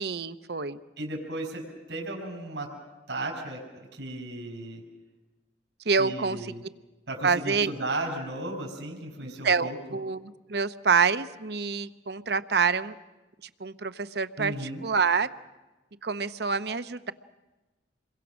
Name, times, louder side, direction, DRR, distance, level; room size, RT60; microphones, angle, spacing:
voice 1, 0.0-0.8 5.9-6.5 7.2-7.7 9.2-13.0 13.6-15.3 16.0-17.1, right 5 dB, 60° right, 12 dB, 0.8 m, -27 dB
voice 2, 1.0-1.6 1.9-2.7 3.1-4.8 6.0-6.6 7.1-9.7 14.4-14.8, right 2 dB, 80° right, 0 dB, 5.1 m, -35 dB
27.5 x 23.0 x 6.3 m, 1.2 s
head